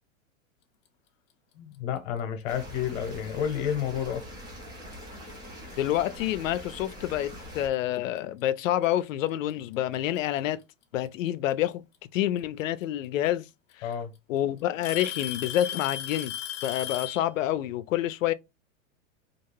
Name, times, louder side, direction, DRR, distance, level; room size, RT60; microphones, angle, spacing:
voice 1, 1.6-4.3 13.8-14.1, left 9 dB, 55° left, 0.9 m, -30 dB
sound 1, 2.5-7.7, equal, 10° right, 0.4 m, -43 dB
Alarm / Tick-tock, 4.4-4.5 5.3-5.4 7.1-7.2 8.4-8.5 9.7-10.2 11.9-12.0 13.3-13.4 13.7-14.2 14.8-17.3, left 11 dB, 35° left, 0.6 m, -35 dB
voice 2, 5.8-10.6 10.9-11.8 12.1-13.5 13.8-13.9 14.3-16.3 16.6-18.3, left 12 dB, 85° left, 0.5 m, -28 dB
2.4 x 2.3 x 3.2 m
supercardioid pair, 140°, 38 cm